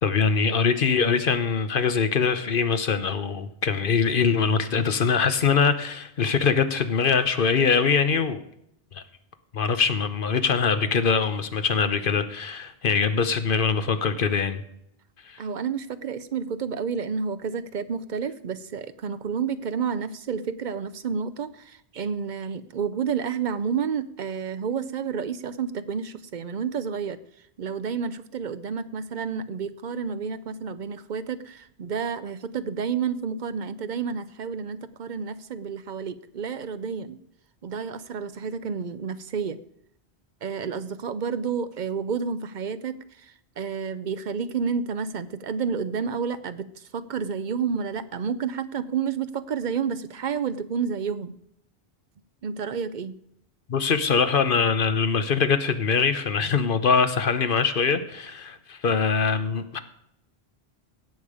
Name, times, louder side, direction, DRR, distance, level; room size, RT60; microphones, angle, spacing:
voice 1, 0.0-8.4 8.9-9.0 9.5-14.6 53.7-59.8, left 5 dB, 55° left, 1.0 m, -23 dB
voice 2, 15.4-27.2 27.6-37.2 37.6-39.6 40.4-51.3 52.4-53.2, right 6 dB, 50° right, 0.7 m, -30 dB
17.0 x 7.1 x 4.9 m
omnidirectional pair, 1.1 m